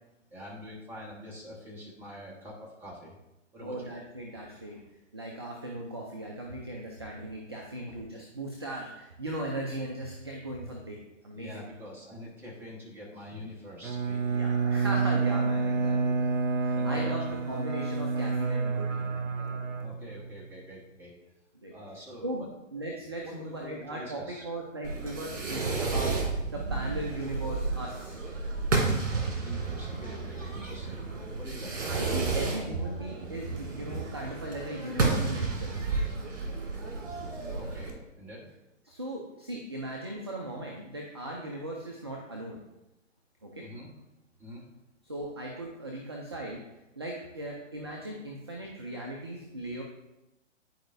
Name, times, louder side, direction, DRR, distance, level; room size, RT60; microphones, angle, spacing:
voice 1, 0.3-3.2 3.5-3.9 11.3-14.4 16.6-17.3 19.8-21.1 21.7-22.5 23.2-24.4 29.1-31.0 31.4-31.7 37.3-38.4 43.6-43.9 44.4-44.6, left 1 dB, 5° right, -4 dB, 1.2 m, -45 dB
voice 2, 3.6-4.8 5.1-11.0 11.2-11.6 14.3-16.3 16.6-19.6 21.6-21.7 22.2-28.2 31.9-35.7 38.9-42.6 43.4-43.7 45.1-46.6 47.0-49.8, right 1 dB, 20° right, -1 dB, 0.3 m, -38 dB
Bowed string instrument, 13.8-20.4, right 4 dB, 90° right, 0.7 m, -29 dB
Fireworks, 24.8-37.9, right 3 dB, 65° right, 2.1 m, -32 dB
10.5 x 4.8 x 2.5 m, 0.94 s
figure-of-eight pair, 140°, 38 cm